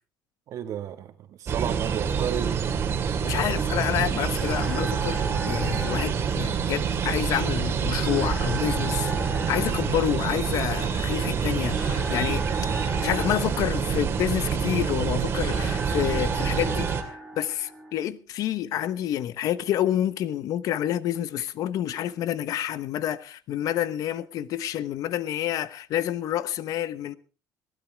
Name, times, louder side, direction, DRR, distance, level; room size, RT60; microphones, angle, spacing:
voice 1, 0.5-2.6, right 9 dB, 55° right, 1.7 m, -32 dB
sound 1, 1.5-17.0, right 6 dB, 35° right, 2.4 m, -27 dB
voice 2, 3.2-27.1, left 11 dB, 60° left, 1.0 m, -28 dB
sound 2, 3.5-17.9, right 1 dB, 5° left, 5.1 m, -38 dB
21.5 x 16.0 x 3.5 m
cardioid pair, 150°, 7 cm